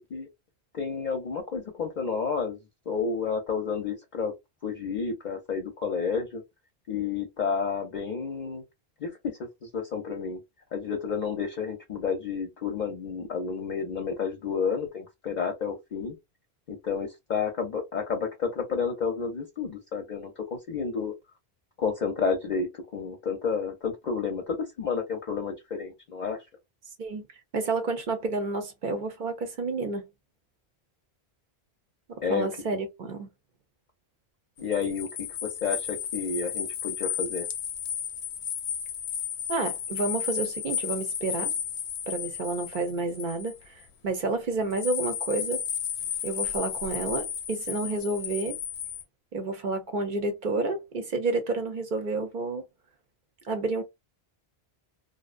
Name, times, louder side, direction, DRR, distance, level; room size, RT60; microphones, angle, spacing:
voice 1, 0.7-2.6 2.9-4.3 4.6-6.4 6.9-8.6 9.0-10.4 10.7-16.1 16.7-21.1 21.8-26.4 32.2-32.5 34.6-37.5, left 5 dB, 50° left, 0.7 m, -30 dB
voice 2, 27.5-30.0 32.3-33.3 39.5-41.5 42.1-45.6 46.2-48.6 49.3-52.6 53.4-53.8, right 3 dB, 55° right, 0.7 m, -30 dB
sound 1, 34.6-43.8 44.7-49.0, left 8 dB, 80° left, 0.8 m, -33 dB
2.6 x 2.1 x 2.4 m
omnidirectional pair, 1.1 m